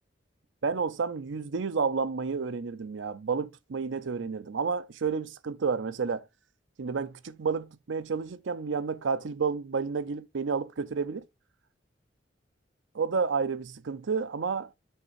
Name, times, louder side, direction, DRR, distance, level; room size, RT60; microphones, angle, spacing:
voice 1, 0.6-6.2 6.8-11.2 12.9-14.7, right 5 dB, 75° right, 0.5 m, -30 dB
6.5 x 3.3 x 4.5 m
head